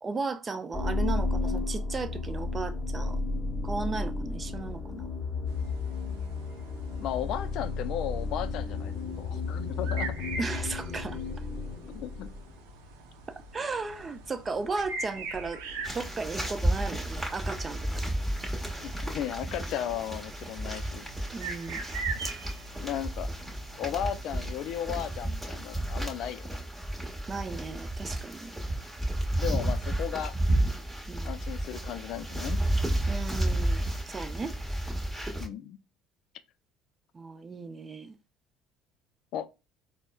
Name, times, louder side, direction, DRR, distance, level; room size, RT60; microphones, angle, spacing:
voice 1, 0.0-3.2 3.6-5.1 10.4-11.2 13.3-18.0 21.3-21.8 27.3-28.5 31.1-31.3 33.1-34.5 37.1-38.2, right 4 dB, 30° right, 0.5 m, -35 dB
sound 1, 0.7-12.6, left 3 dB, 20° left, 1.0 m, -33 dB
sound 2, 5.5-25.1, right 3 dB, 75° right, 0.6 m, -43 dB
voice 2, 7.0-10.2 11.9-12.3 18.8-21.0 22.8-23.3 23.8-26.6 29.4-30.3 31.2-32.6 35.4-35.8 39.3-39.5, left 10 dB, 60° left, 0.3 m, -35 dB
sound 3, 15.8-35.5, right 1 dB, 10° right, 1.1 m, -32 dB
4.1 x 2.0 x 2.2 m
hypercardioid pair, 65°, 0 cm